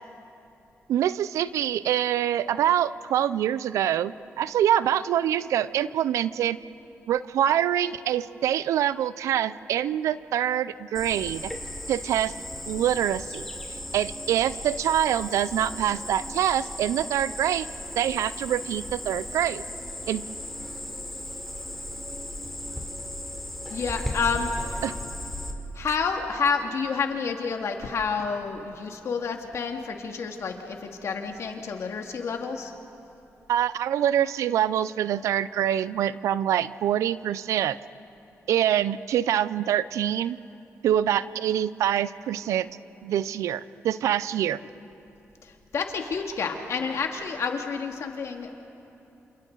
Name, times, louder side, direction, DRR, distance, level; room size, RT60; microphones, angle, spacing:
voice 1, 0.9-6.6 7.1-11.5 11.9-12.3 12.7-13.5 13.9-17.7 18.0-19.6 20.1-20.2 24.8-24.9 33.5-37.8 38.5-40.4 40.8-42.7 43.0-44.6, right 11 dB, 90° right, 17 dB, 0.5 m, -25 dB
Cricket, 10.9-25.5, left 1 dB, 5° left, 3.3 m, -36 dB
voice 2, 23.7-24.8 25.8-32.7 45.4-48.5, left 5 dB, 70° left, 3 dB, 2.0 m, -29 dB
28.5 x 28.0 x 3.9 m, 2.8 s
cardioid pair, 65°, 5 cm